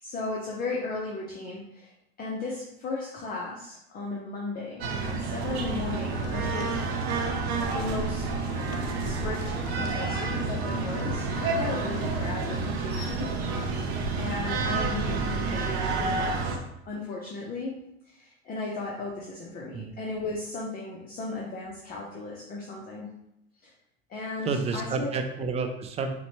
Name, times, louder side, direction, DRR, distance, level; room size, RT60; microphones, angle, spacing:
voice 1, 0.0-1.9 2.2-6.8 7.7-8.3 9.0-13.3 14.2-16.6 16.9-17.8 18.0-23.1 23.6-23.7 24.1-25.1, left 3 dB, 30° left, -3 dB, 0.6 m, -36 dB
sound 1, 4.8-16.6, right 4 dB, 75° right, 0.7 m, -29 dB
sound 2, 5.7-12.7, left 6 dB, 80° left, 0.5 m, -41 dB
voice 2, 24.4-26.1, right 4 dB, 20° right, 6 dB, 0.4 m, -30 dB
3.8 x 2.2 x 3.1 m, 0.82 s
hypercardioid pair, 95°, 32 cm